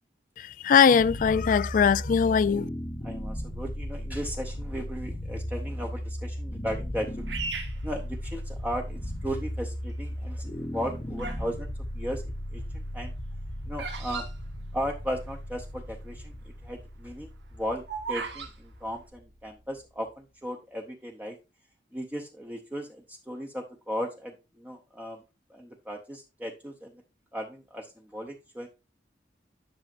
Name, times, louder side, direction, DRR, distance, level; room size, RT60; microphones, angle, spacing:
voice 1, 0.4-2.7, left 6 dB, 45° left, 0.3 m, -21 dB
sound 1, 0.9-20.0, equal, 25° left, 0.9 m, -36 dB
voice 2, 3.0-7.2 7.8-13.1 13.7-14.3 14.7-17.8 18.1-21.4 21.9-25.2 25.5-27.0 27.3-28.7, equal, 10° right, 0.7 m, -36 dB
Bird vocalization bird call bird song, 7.3-8.8 9.4-9.9 10.6-11.5 11.8-15.3 15.6-15.7 15.8-16.2 16.6-18.5, right 5 dB, 85° right, 1.6 m, -38 dB
10.5 x 6.2 x 2.5 m
head